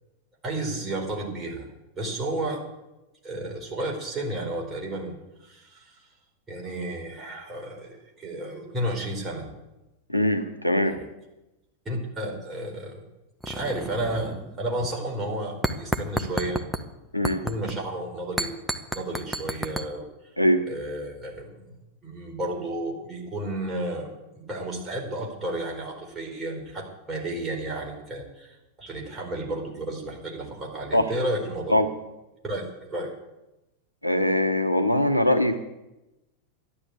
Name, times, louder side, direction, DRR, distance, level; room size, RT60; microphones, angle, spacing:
voice 1, 0.4-1.7 2.0-2.6 3.2-5.1 5.4-6.0 6.5-9.5 10.8-11.0 11.8-13.0 13.4-16.6 17.4-18.5 18.9-20.1 20.7-21.7 22.0-24.1 24.3-31.7 32.4-33.1, right 1 dB, 20° right, -1 dB, 4.5 m, -32 dB
voice 2, 10.1-11.0 17.1-17.4 20.4-20.6 30.9-31.1 31.7-31.9 34.0-35.6, left 1 dB, 90° right, 7 dB, 1.0 m, -22 dB
sound 1, 13.4-14.6 14.8-15.0 15.6-16.8 17.2-17.7 18.4-19.9, right 1 dB, ahead, 1.1 m, -30 dB
12.5 x 10.5 x 8.5 m, 0.98 s
figure-of-eight pair, 90°, 0 cm